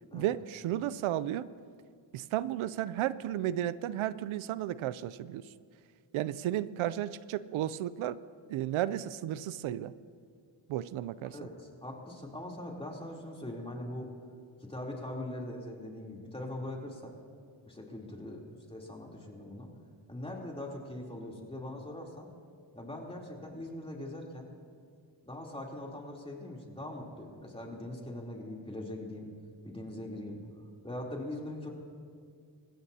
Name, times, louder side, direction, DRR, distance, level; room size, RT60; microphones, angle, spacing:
voice 1, 0.1-1.5 2.1-5.4 6.1-8.2 8.5-9.9 10.7-11.4, right 12 dB, 90° right, 16 dB, 0.6 m, -33 dB
voice 2, 11.2-14.1 14.6-17.1 17.6-19.7 20.1-22.3 22.7-24.5 25.2-29.3 29.6-30.4 30.8-31.7, left 1 dB, 10° left, -2 dB, 3.3 m, -41 dB
28.0 x 15.5 x 2.8 m, 2.1 s
cardioid pair, 85°, 47 cm